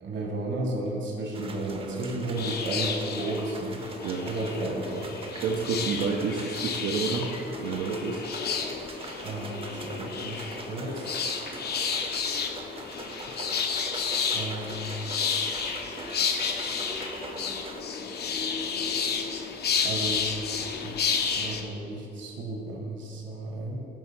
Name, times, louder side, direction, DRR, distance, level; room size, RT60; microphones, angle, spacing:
voice 1, 0.0-3.8 4.2-5.1 9.2-11.1 14.3-14.9 19.8-20.3 20.8-23.8, right 2 dB, 65° right, 0 dB, 1.4 m, -33 dB
sound 1, 1.3-17.8, right 3 dB, 30° right, 0.6 m, -43 dB
sound 2, 2.3-21.6, left 6 dB, 55° left, 0.6 m, -31 dB
voice 2, 4.0-4.3 5.4-8.2, right 5 dB, 90° right, -2 dB, 0.6 m, -29 dB
10.0 x 3.4 x 4.4 m, 2.7 s
cardioid pair, 90°, 20 cm